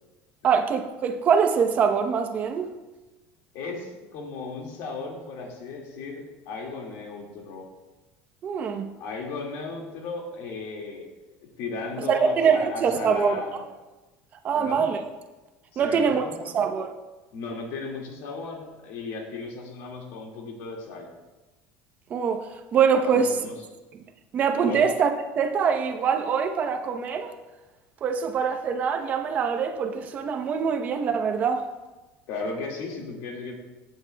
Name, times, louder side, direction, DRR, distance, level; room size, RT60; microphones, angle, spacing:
voice 1, 0.4-2.7 8.4-8.9 12.1-13.4 14.4-15.1 15.8-16.2 16.5-16.9 22.1-23.4 24.3-25.1 25.4-27.4 28.0-31.6, right 6 dB, 30° right, 5 dB, 0.8 m, -24 dB
voice 2, 3.5-7.7 9.0-11.1 11.6-13.6 14.5-14.9 15.7-16.6 17.3-21.1 23.0-23.5 24.7-24.9 32.3-33.5, left 3 dB, 65° left, 0 dB, 2.0 m, -35 dB
16.5 x 8.2 x 2.3 m, 1.1 s
cardioid pair, 165°, 5 cm